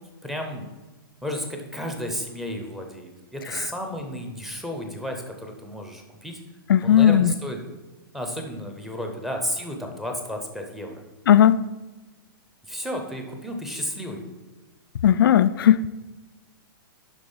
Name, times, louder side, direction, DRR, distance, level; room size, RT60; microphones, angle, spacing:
voice 1, 0.2-0.7 1.2-6.4 6.8-7.6 8.1-11.0 12.7-14.2, equal, ahead, 2 dB, 0.7 m, -32 dB
voice 2, 6.7-7.3 11.3-11.6 15.0-15.9, left 10 dB, 70° left, 12 dB, 0.4 m, -16 dB
10.5 x 3.8 x 5.5 m, 1.2 s
hypercardioid pair, 175°, 12 cm